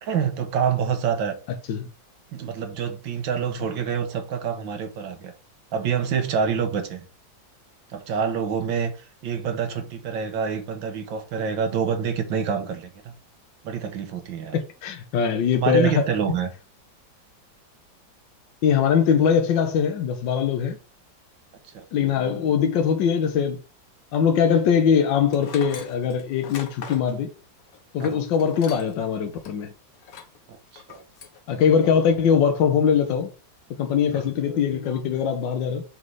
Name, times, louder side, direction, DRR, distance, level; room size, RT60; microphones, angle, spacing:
voice 1, 0.0-1.4 2.3-5.3 5.7-7.0 7.9-8.9 9.2-13.1 13.6-14.6 15.5-16.5 21.7-21.9 28.0-28.2 30.5-31.0 34.1-34.2, right 7 dB, 80° right, 1.8 m, -27 dB
voice 2, 14.5-16.1 18.6-20.8 21.9-23.6 24.1-27.3 27.9-29.7 31.5-33.3 33.8-35.8, left 7 dB, 75° left, 1.5 m, -21 dB
Tools, 25.3-29.1 29.4-29.5 30.0-30.4 30.8-31.4, left 6 dB, 55° left, 1.3 m, -40 dB
6.5 x 3.2 x 5.4 m
omnidirectional pair, 2.0 m